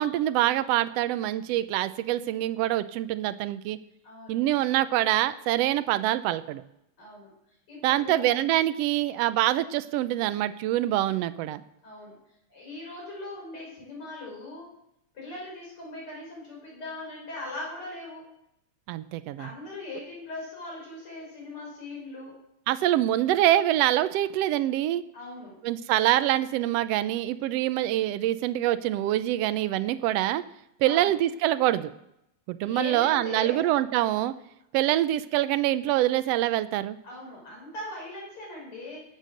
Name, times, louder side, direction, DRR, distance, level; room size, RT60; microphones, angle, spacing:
voice 1, 0.0-3.8 4.3-6.6 7.8-11.6 18.9-19.5 22.7-25.0 25.6-30.4 30.8-31.9 32.5-34.3 34.7-37.0, right 14 dB, 75° right, 13 dB, 1.6 m, -25 dB
voice 2, 4.0-4.4 7.0-7.3 7.7-8.3 11.8-12.2 12.5-14.7 15.2-18.3 19.4-22.4 25.1-25.6 30.9-31.2 32.6-33.7 37.0-39.0, left 2 dB, 45° left, -3 dB, 6.8 m, -40 dB
19.5 x 8.4 x 6.5 m, 0.81 s
omnidirectional pair, 3.3 m